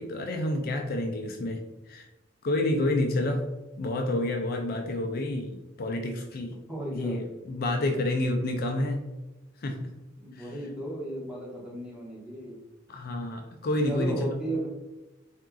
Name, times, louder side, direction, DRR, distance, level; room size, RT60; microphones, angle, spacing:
voice 1, 0.0-1.6 1.9-2.1 2.4-3.4 3.8-6.6 6.9-9.0 9.6-9.9 10.4-10.5 12.9-14.2, left 1 dB, 50° left, 4 dB, 0.4 m, -29 dB
voice 2, 6.7-7.2 10.2-12.6 13.9-14.7, right 1 dB, 5° right, -7 dB, 1.3 m, -34 dB
4.2 x 3.6 x 2.3 m, 1.1 s
head